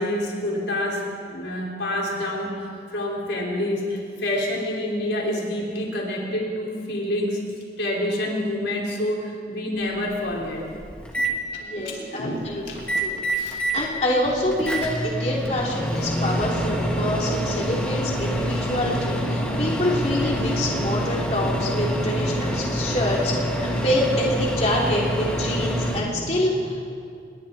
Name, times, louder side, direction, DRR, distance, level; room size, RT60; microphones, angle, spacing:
voice 1, 0.0-7.4 7.8-10.6 11.2-12.9 13.3-13.6 15.9-16.1 17.6-17.8 25.8-26.8, left 1 dB, 90° left, -3 dB, 5.1 m, -28 dB
Microwave oven, 9.8-9.9 10.3-11.3 12.7-13.8 14.2-26.0, equal, 5° left, 2.4 m, -26 dB
voice 2, 11.6-26.8, left 1 dB, 40° left, -3 dB, 3.3 m, -26 dB
28.0 x 22.0 x 4.3 m, 2.3 s
head